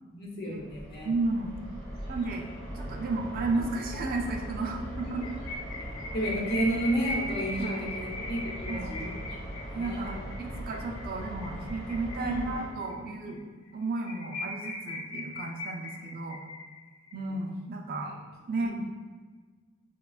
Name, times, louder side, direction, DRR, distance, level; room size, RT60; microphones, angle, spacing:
voice 1, 0.1-1.1 5.1-5.2 6.1-9.1 9.7-10.2 10.8-10.9 12.2-12.4 17.2-17.4 18.5-18.8, right 1 dB, 50° left, -3 dB, 0.8 m, -32 dB
sound 1, 0.6-12.7, equal, 20° left, 1.2 m, -40 dB
voice 2, 1.0-1.5 2.1-5.2 7.6-7.8 8.7-8.9 9.7-13.4 13.7-16.4 17.1-18.1 18.5-18.8, right 3 dB, 45° right, 2 dB, 0.4 m, -33 dB
sound 2, 5.0-12.9 13.3-13.4 13.7-13.8 14.0-17.1, left 2 dB, 85° left, 0.5 m, -39 dB
4.9 x 2.2 x 2.3 m, 1.4 s
head